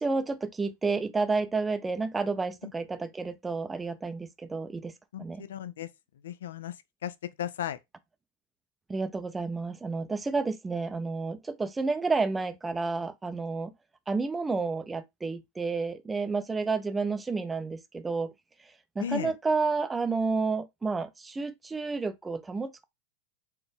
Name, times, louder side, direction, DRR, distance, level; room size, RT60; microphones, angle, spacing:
voice 1, 0.0-4.9 5.2-5.5 8.9-13.7 14.1-18.3 19.0-22.9, right 4 dB, 10° right, 0.4 m, -30 dB
voice 2, 5.1-5.9 6.2-6.8 7.0-7.8 19.0-19.3, left 10 dB, 90° left, 0.5 m, -35 dB
4.3 x 2.4 x 3.4 m
supercardioid pair, 140°, 0 cm